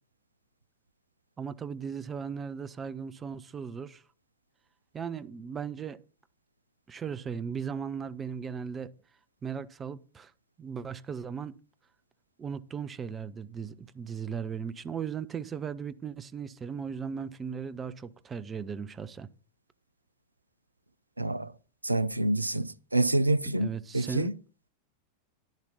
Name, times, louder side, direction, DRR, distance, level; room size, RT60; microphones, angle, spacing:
voice 1, 1.4-4.0 4.9-6.0 6.9-8.9 9.4-10.3 10.6-11.5 12.4-19.3 23.6-24.3, right 6 dB, 20° right, 0.7 m, -37 dB
voice 2, 21.2-21.5 21.8-24.3, right 2 dB, 85° right, 0.5 m, -27 dB
11.5 x 10.5 x 4.1 m
figure-of-eight pair, 90°, 0 cm